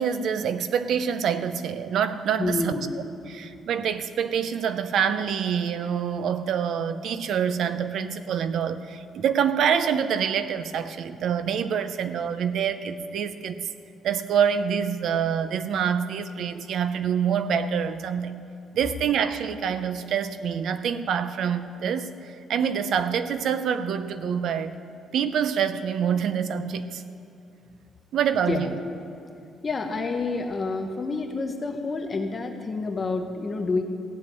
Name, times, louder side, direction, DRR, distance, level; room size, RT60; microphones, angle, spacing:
voice 1, 0.0-2.8 3.3-13.6 14.0-18.3 18.7-24.8 25.1-27.0 28.1-28.8, right 7 dB, 55° right, 0.6 m, -26 dB
voice 2, 2.4-2.9 28.5-28.7 29.6-33.8, left 3 dB, 25° left, 0.9 m, -28 dB
16.0 x 7.2 x 9.1 m
cardioid pair, 175°, 0 cm